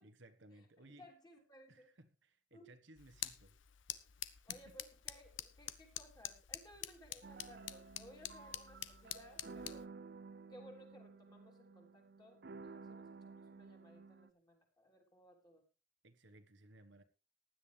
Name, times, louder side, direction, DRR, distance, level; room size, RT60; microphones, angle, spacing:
voice 1, 0.0-1.1 1.7-3.6 4.3-4.8 16.0-17.0, right 1 dB, 70° right, 1.4 m, -61 dB
voice 2, 1.0-1.9 2.5-2.7 4.5-9.9 10.5-15.6, equal, 20° left, 3.6 m, -60 dB
sound 1, 3.0-9.9, left 12 dB, 75° left, 1.0 m, -48 dB
sound 2, 7.2-14.3, right 4 dB, 55° right, 0.5 m, -53 dB
16.0 x 11.0 x 3.4 m
head